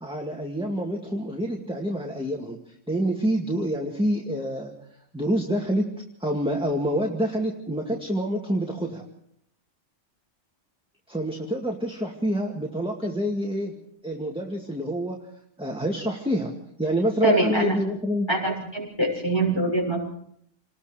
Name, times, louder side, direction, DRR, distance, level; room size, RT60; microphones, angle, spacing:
voice 1, 0.0-4.7 5.1-5.9 6.2-9.0 11.1-13.8 14.0-15.3 15.6-16.5 16.8-18.3, equal, 5° right, 0 dB, 2.1 m, -27 dB
voice 2, 17.2-17.8 18.3-20.0, right 2 dB, 20° left, -1 dB, 7.1 m, -23 dB
28.5 x 20.0 x 5.0 m, 0.69 s
omnidirectional pair, 1.3 m